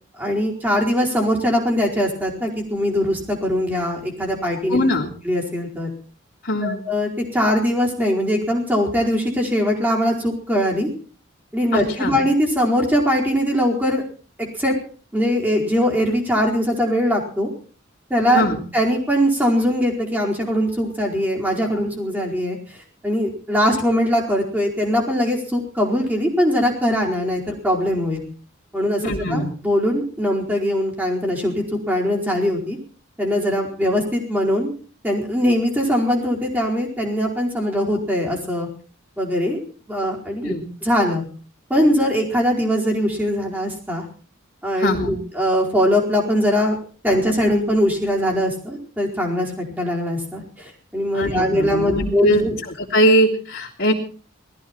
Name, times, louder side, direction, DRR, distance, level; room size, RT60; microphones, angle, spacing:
voice 1, 0.2-4.8 5.2-5.9 6.6-10.9 11.5-14.0 14.6-14.7 15.1-17.5 18.1-18.4 18.7-22.6 23.0-28.2 28.7-31.5 31.9-32.8 33.2-34.7 35.0-38.7 39.2-39.6 39.9-40.5 40.8-41.2 41.7-44.0 44.6-46.8 47.0-52.6, equal, 10° right, -1 dB, 4.6 m, -21 dB
voice 2, 4.7-5.1 6.4-6.8 11.7-12.2 18.3-18.6 29.0-29.5 40.4-40.6 44.8-45.2 51.1-52.5 52.8-53.9, equal, 50° left, -7 dB, 3.4 m, -20 dB
20.0 x 15.0 x 4.5 m, 0.41 s
head